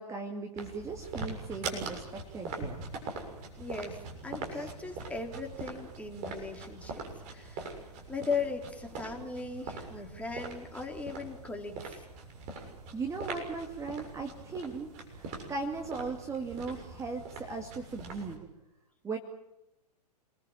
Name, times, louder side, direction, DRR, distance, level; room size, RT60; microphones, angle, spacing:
voice 1, 0.0-2.8 4.5-4.7 12.9-18.5 19.0-19.2, right 4 dB, 15° right, 3 dB, 2.2 m, -38 dB
sound 1, 0.6-18.4, right 3 dB, 35° right, 6.9 m, -42 dB
voice 2, 3.6-7.0 7.3-7.7 8.1-12.0, left 4 dB, 5° left, 2 dB, 3.2 m, -38 dB
27.5 x 21.0 x 7.3 m, 0.91 s
figure-of-eight pair, 105°, 21 cm